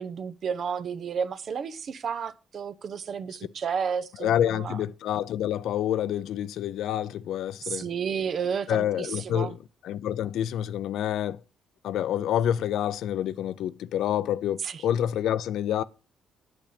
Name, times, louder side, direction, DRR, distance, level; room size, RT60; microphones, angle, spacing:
voice 1, 0.0-4.8 7.6-9.5 14.6-14.8, right 6 dB, 55° right, 0.8 m, -32 dB
voice 2, 4.2-7.9 8.7-9.5 9.8-11.4 11.8-15.8, left 10 dB, 80° left, 0.5 m, -27 dB
9.1 x 8.7 x 5.1 m
cardioid pair, 90°, 0 cm